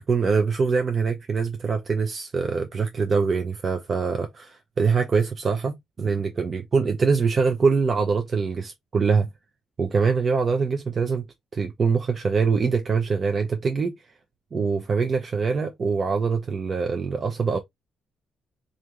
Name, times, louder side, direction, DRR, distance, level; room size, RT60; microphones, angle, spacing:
voice 1, 0.0-9.3 9.8-11.2 11.5-14.0 14.5-17.6, right 5 dB, 40° right, 0.5 m, -24 dB
3.5 x 2.6 x 2.8 m
cardioid pair, 90°, 0 cm